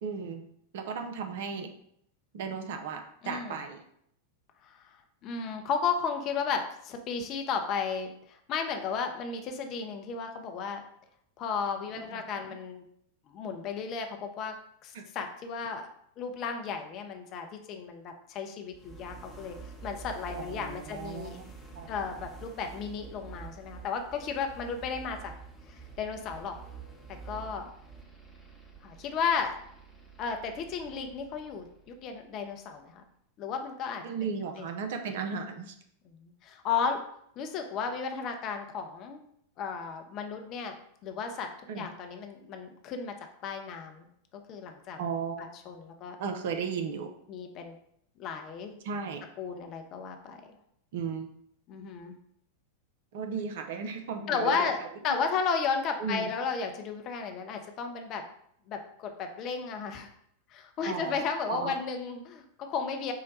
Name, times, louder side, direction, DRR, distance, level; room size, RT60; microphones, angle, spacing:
voice 1, 0.0-0.4 0.7-1.7 2.3-3.8 12.1-12.2 14.9-15.0 20.4-21.9 34.0-35.7 41.7-41.9 45.0-45.6 46.2-47.1 48.8-49.2 50.9-51.3 53.1-54.7 55.1-55.2 56.0-56.3 60.9-61.2 61.5-61.7, right 5 dB, 55° right, 6 dB, 0.5 m, -35 dB
voice 2, 3.2-3.6 4.6-5.0 5.2-10.8 11.4-12.8 13.3-14.6 14.8-15.9 16.2-21.4 21.9-25.3 25.7-26.6 27.3-27.7 28.8-29.6 30.2-33.0 33.4-34.0 34.6-34.7 36.0-37.0 37.4-39.2 39.6-40.7 41.0-41.5 41.8-43.1 43.4-44.1 44.5-45.0 45.4-46.2 47.3-47.8 48.2-48.7 49.4-50.5 51.7-52.2 54.3-58.2 58.7-60.1 60.5-63.1, left 5 dB, 35° left, 5 dB, 0.5 m, -34 dB
sound 1, 18.7-32.6, right 5 dB, ahead, 0.8 m, -48 dB
4.7 x 2.1 x 3.9 m, 0.70 s
figure-of-eight pair, 90°, 0 cm